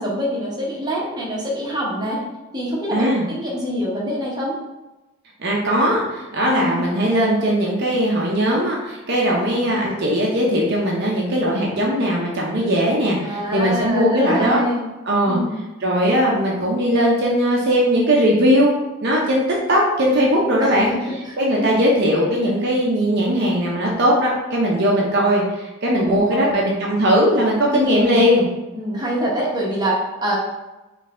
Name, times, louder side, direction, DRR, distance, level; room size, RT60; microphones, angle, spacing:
voice 1, 0.0-2.2 2.5-3.1 3.3-4.5 6.5-6.8 13.2-14.9 15.3-15.6 20.6-21.0 21.3-21.8 26.0-26.6 27.7-28.2 28.7-30.4, equal, 20° right, -5 dB, 1.1 m, -25 dB
voice 2, 2.9-3.3 5.4-14.6 15.1-15.4 15.8-18.7 19.0-20.9 21.4-28.5, equal, 50° right, -3 dB, 0.7 m, -19 dB
4.1 x 3.3 x 3.7 m, 1.1 s
head